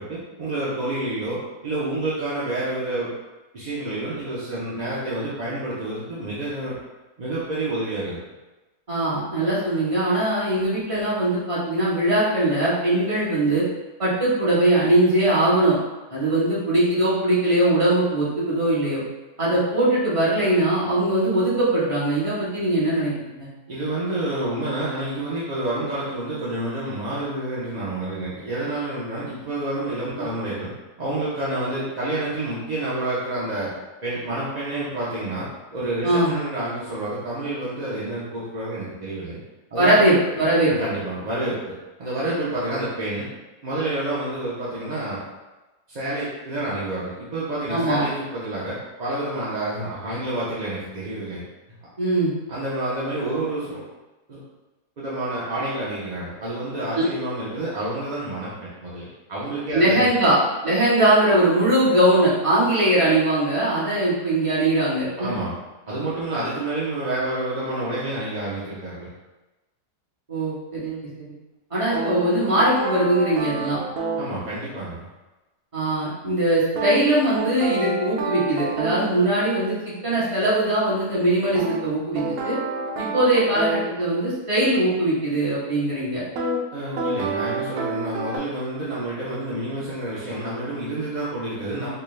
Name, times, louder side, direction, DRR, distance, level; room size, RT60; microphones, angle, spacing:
voice 1, 0.0-3.1 3.5-6.7 7.2-8.2 23.7-30.7 31.0-33.7 34.0-39.4 39.7-40.0 40.7-43.3 43.6-45.2 45.9-51.4 52.5-53.8 54.3-54.4 55.0-60.1 65.2-65.5 65.9-69.1 74.2-75.1 86.7-91.9, right 2 dB, 50° right, -9 dB, 0.5 m, -29 dB
voice 2, 8.9-13.6 14.0-15.8 16.1-19.0 19.4-23.5 30.2-30.3 36.0-36.3 39.8-40.7 47.7-48.0 52.0-52.3 56.9-57.1 59.7-60.4 60.6-65.3 70.3-71.0 71.7-73.8 75.7-79.7 80.0-82.6 83.0-86.2, right 1 dB, 20° right, -10 dB, 1.2 m, -21 dB
sound 1, 71.9-74.3 76.8-79.1 81.5-83.9 86.4-86.6 87.0-88.4, right 3 dB, 70° right, 1.0 m, -28 dB
4.4 x 2.2 x 3.2 m, 1.1 s
omnidirectional pair, 1.7 m